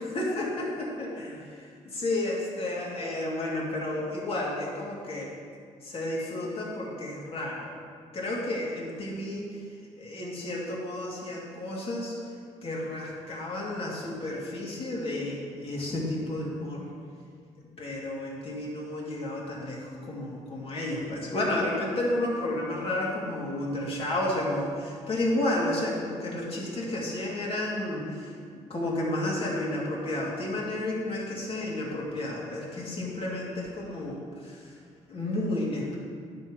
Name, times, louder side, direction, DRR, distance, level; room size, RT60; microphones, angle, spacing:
voice 1, 0.0-5.3 5.8-7.7 8.1-9.6 10.0-12.1 12.6-16.8 17.8-28.3 28.7-34.6 35.1-36.0, left 1 dB, 50° left, -4 dB, 2.5 m, -31 dB
10.0 x 5.6 x 6.3 m, 2.1 s
cardioid pair, 100°, 13 cm